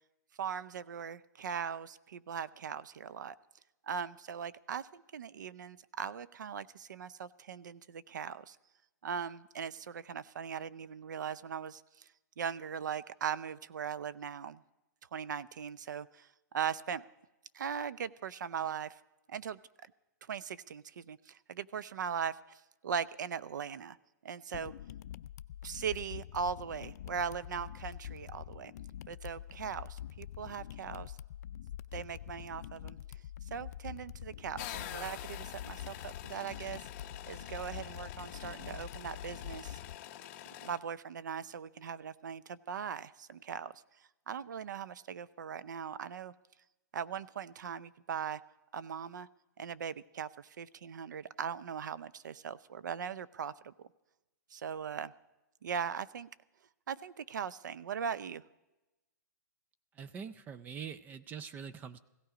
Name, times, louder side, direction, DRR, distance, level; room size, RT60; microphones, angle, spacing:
voice 1, 0.4-3.4 3.9-8.6 9.0-12.1 12.4-14.6 15.1-16.3 16.5-17.0 17.5-19.0 19.3-19.6 20.3-24.0 24.2-24.7 25.6-28.7 29.1-31.2 31.9-33.0 33.5-36.8 37.3-39.8 40.6-43.7 44.3-46.3 46.9-48.4 48.7-49.3 49.6-53.9 54.5-55.1 55.6-56.3 56.9-58.4, right 7 dB, 85° right, 18 dB, 0.5 m, -39 dB
sound 1, 24.5-40.0, left 11 dB, 60° left, 0.4 m, -46 dB
sound 2, 34.6-40.8, left 12 dB, 40° left, 0.8 m, -46 dB
voice 2, 60.0-62.0, right 7 dB, 20° right, 13 dB, 0.4 m, -44 dB
16.5 x 14.5 x 5.0 m, 1.0 s
hypercardioid pair, 145°, 10 cm